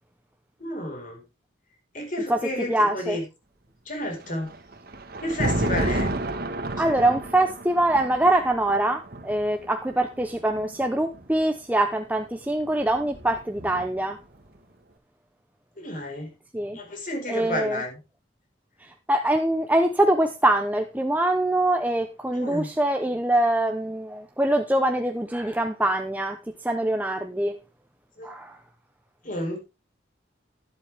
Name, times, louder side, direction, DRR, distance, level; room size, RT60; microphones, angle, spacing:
voice 1, 0.6-1.2 1.9-3.2 3.9-4.6 5.2-6.1 15.8-16.3 16.7-18.0 22.3-22.7 28.2-28.3 29.2-29.6, left 1 dB, 45° left, 4.9 m, -31 dB
voice 2, 2.7-3.2 6.8-14.2 16.5-16.8 17.3-17.8 19.1-26.4 26.6-27.5 28.2-28.5, right 1 dB, 10° right, 0.8 m, -24 dB
Thunder, 4.2-11.4 12.4-14.2, right 1 dB, 55° right, 1.5 m, -31 dB
12.0 x 11.5 x 3.5 m
head